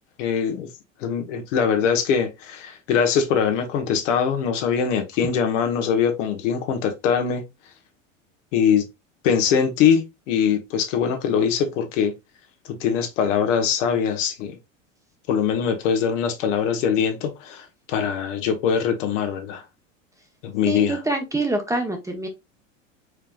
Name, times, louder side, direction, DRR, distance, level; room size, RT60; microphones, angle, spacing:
voice 1, 0.2-0.7 1.0-7.4 8.5-8.8 9.2-12.1 12.7-14.6 15.3-19.6 20.4-21.0, left 7 dB, 70° left, 1.2 m, -22 dB
voice 2, 20.6-22.3, right 2 dB, 10° right, 0.9 m, -25 dB
4.7 x 3.3 x 2.3 m
hypercardioid pair, 100°, 39 cm